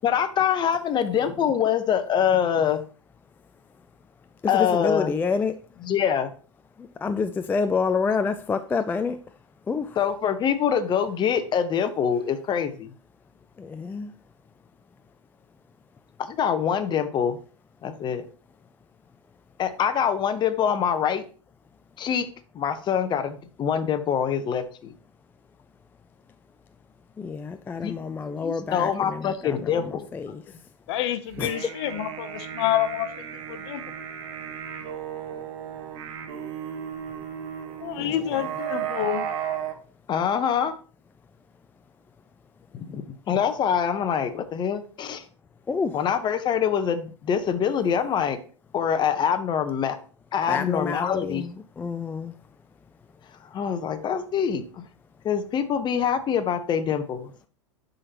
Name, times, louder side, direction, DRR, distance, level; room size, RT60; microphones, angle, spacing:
voice 1, 0.0-2.8 4.5-5.1 5.8-6.3 10.0-12.9 16.2-17.4 17.8-18.2 19.6-21.2 22.0-22.3 22.5-24.9 27.8-28.0 28.4-30.1 40.1-40.7 42.7-45.2 45.9-48.4 48.7-50.0 50.3-51.5 53.5-54.8 55.2-57.3, left 8 dB, 30° left, 0.8 m, -25 dB
voice 2, 4.5-5.5 7.0-9.2 9.7-9.9 13.6-14.1 27.2-29.8 30.1-30.4 31.4-31.5 38.0-38.1 45.7-45.9 50.5-51.5 51.8-52.3, left 5 dB, 10° left, 0.3 m, -27 dB
voice 3, 30.9-33.1 33.5-33.8 37.8-39.3, left 12 dB, 60° left, 0.8 m, -28 dB
sound 1, 31.3-39.8, right 9 dB, 55° right, 1.2 m, -34 dB
11.0 x 3.9 x 2.9 m
hypercardioid pair, 100°, 16 cm